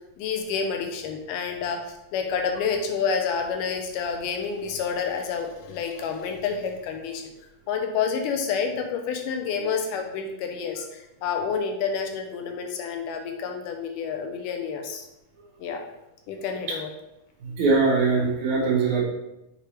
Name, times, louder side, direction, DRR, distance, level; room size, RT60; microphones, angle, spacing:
voice 1, 0.2-7.2 7.7-15.0 15.6-15.8 16.3-16.9, left 6 dB, 85° left, 3 dB, 2.3 m, -29 dB
voice 2, 17.4-19.0, right 4 dB, 70° right, -2 dB, 2.4 m, -22 dB
6.7 x 4.5 x 3.2 m, 0.87 s
omnidirectional pair, 3.8 m